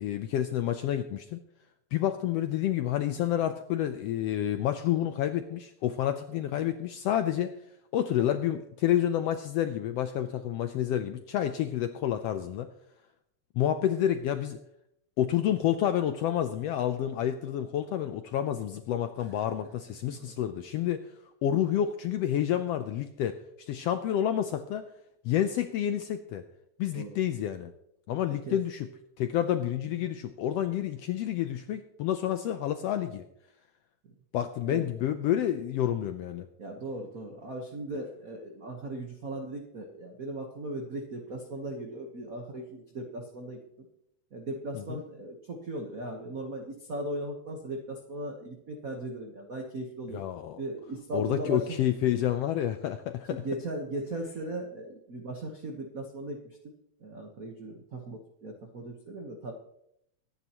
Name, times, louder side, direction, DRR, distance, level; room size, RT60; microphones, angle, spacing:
voice 1, 0.0-1.4 1.9-7.5 7.9-12.7 13.6-14.6 15.2-21.1 21.4-24.8 25.2-26.4 26.8-27.7 28.1-28.9 29.2-33.3 34.3-36.5 44.7-45.0 50.1-50.6 51.1-53.4, left 11 dB, 80° left, 9 dB, 1.4 m, -29 dB
voice 2, 36.6-43.9 44.3-50.2 50.6-51.6 53.3-56.6 57.0-59.5, right 1 dB, 70° right, 2 dB, 0.8 m, -38 dB
23.0 x 9.8 x 3.0 m, 0.78 s
omnidirectional pair, 3.4 m